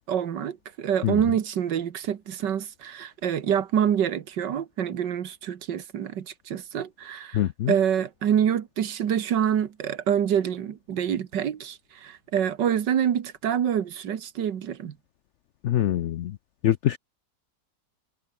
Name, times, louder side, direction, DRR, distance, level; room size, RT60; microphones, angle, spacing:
voice 1, 0.1-7.4 7.7-14.9, right 9 dB, 75° right, 1.9 m, -26 dB
voice 2, 7.3-7.7 15.6-16.4 16.6-17.0, left 12 dB, 85° left, 0.6 m, -24 dB
omnidirectional pair, 1.9 m